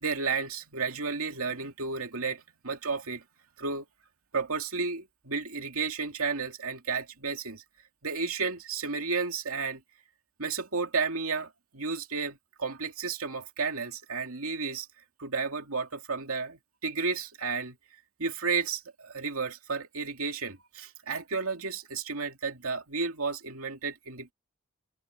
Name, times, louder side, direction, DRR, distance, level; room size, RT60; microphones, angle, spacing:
voice 1, 0.0-3.2 3.6-3.9 4.3-7.6 8.0-9.8 10.4-14.9 15.2-17.8 18.2-24.3, right 4 dB, 75° right, 2.4 m, -32 dB
head